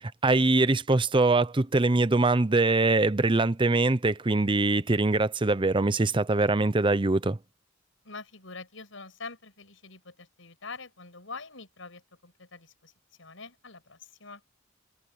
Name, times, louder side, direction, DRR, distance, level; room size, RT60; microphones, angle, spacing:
voice 1, 0.0-7.4, right 2 dB, 25° right, 0.7 m, -23 dB
voice 2, 8.1-12.9 13.2-14.4, left 4 dB, 75° left, 6.9 m, -44 dB
head